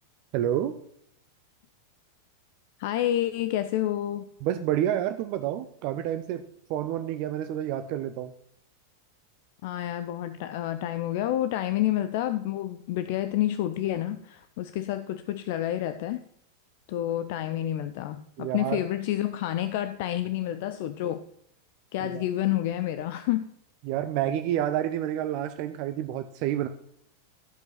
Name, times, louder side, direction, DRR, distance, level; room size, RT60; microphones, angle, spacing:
voice 1, 0.3-0.8 4.4-6.4 6.7-8.3 18.4-18.8 22.0-22.2 23.8-26.7, right 11 dB, 45° right, 9 dB, 0.6 m, -29 dB
voice 2, 2.8-4.3 9.6-16.2 16.9-21.2 21.9-23.5, left 13 dB, 50° left, 12 dB, 0.5 m, -29 dB
13.5 x 5.4 x 5.8 m, 0.72 s
figure-of-eight pair, 90°, 0 cm